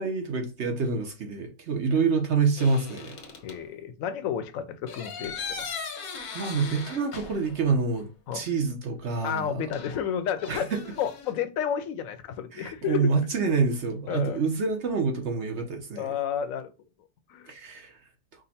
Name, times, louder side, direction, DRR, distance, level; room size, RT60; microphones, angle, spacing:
voice 1, 0.0-3.2 6.3-8.1 8.3-9.6 10.5-10.8 12.5-16.1 17.5-18.0, right 4 dB, 55° right, 1.0 m, -27 dB
sound 1, 2.6-3.6 4.9-7.7 8.0-8.1 9.7-11.3, left 5 dB, 90° left, 1.4 m, -39 dB
voice 2, 3.4-5.7 8.3-8.4 9.2-10.7 11.0-13.1 14.1-14.4 16.0-16.7 17.3-17.5, left 8 dB, 70° left, 1.0 m, -31 dB
5.1 x 2.2 x 4.1 m
omnidirectional pair, 1.5 m